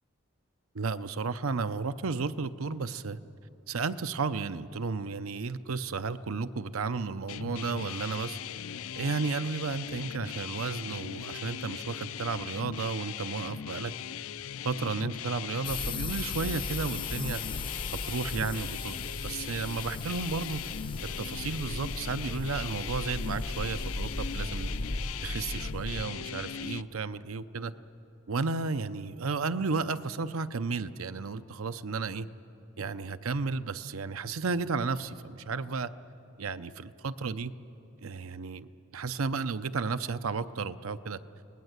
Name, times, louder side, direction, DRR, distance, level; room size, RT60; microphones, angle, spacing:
voice 1, 0.7-3.2 3.7-8.4 9.0-13.9 14.6-17.4 17.9-20.6 21.2-24.7 25.2-27.7 28.3-32.3 32.8-35.9 36.4-37.5 38.0-38.7 38.9-41.2, right 4 dB, 85° right, 12 dB, 0.7 m, -33 dB
sound 1, 7.3-26.8, left 9 dB, 80° left, 0.4 m, -39 dB
sound 2, 15.6-26.1, left 2 dB, 25° left, 0.5 m, -37 dB
29.0 x 19.0 x 8.1 m, 2.9 s
head